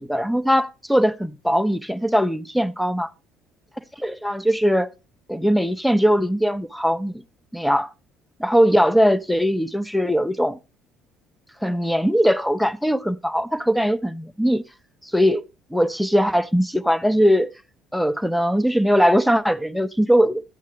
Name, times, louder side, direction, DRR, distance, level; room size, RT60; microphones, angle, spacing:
voice 1, 0.0-3.1 4.0-4.9 5.3-7.2 7.5-7.9 8.4-10.6 11.6-14.6 15.0-15.4 15.7-17.5 17.9-20.4, equal, ahead, 0.6 m, -20 dB
11.5 x 8.3 x 3.3 m
figure-of-eight pair, 55°, 0 cm